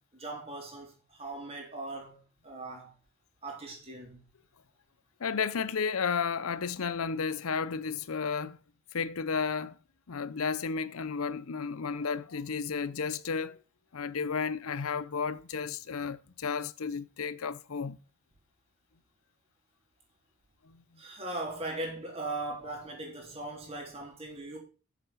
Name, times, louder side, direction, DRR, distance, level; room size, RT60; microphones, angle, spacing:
voice 1, 0.0-2.9 3.4-4.2 21.0-24.6, right 2 dB, 30° right, 3.6 m, -39 dB
voice 2, 5.2-8.6 8.9-9.8 10.1-13.6 13.9-18.0 20.7-20.8, left 5 dB, 80° left, 0.6 m, -33 dB
8.0 x 7.6 x 6.3 m
head